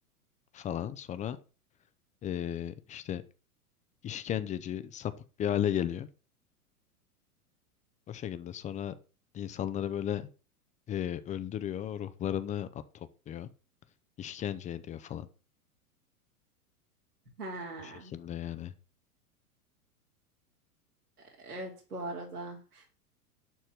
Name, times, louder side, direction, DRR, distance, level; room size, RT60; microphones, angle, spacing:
voice 1, 0.5-1.4 2.2-3.2 4.0-5.1 5.4-6.1 8.1-8.9 9.3-10.3 10.9-12.7 12.9-13.5 14.2-15.3 17.8-18.7, left 10 dB, 15° left, 13 dB, 0.7 m, -34 dB
voice 2, 17.4-18.1 21.4-22.9, right 2 dB, 75° right, -1 dB, 2.9 m, -40 dB
12.0 x 4.3 x 8.1 m, 0.35 s
figure-of-eight pair, 95°, 45 cm